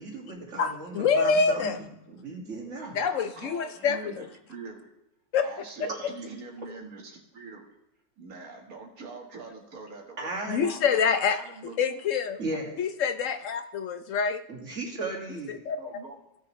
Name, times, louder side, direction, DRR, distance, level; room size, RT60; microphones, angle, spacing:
voice 1, 0.0-1.7 2.1-2.9 5.8-6.0 10.2-10.7 12.4-12.7 14.5-15.6, right 2 dB, 55° right, -1 dB, 2.4 m, -35 dB
voice 2, 0.6-1.8 2.9-4.3 5.3-5.5 5.8-6.1 10.5-11.4 11.8-12.4 12.8-14.4 15.5-15.8, left 5 dB, 70° left, 10 dB, 0.8 m, -26 dB
voice 3, 2.8-4.9 5.4-7.8 8.2-11.8 12.5-12.6 15.8-16.2, right 4 dB, 75° right, 0 dB, 1.9 m, -44 dB
16.0 x 6.8 x 3.1 m, 0.81 s
omnidirectional pair, 1.5 m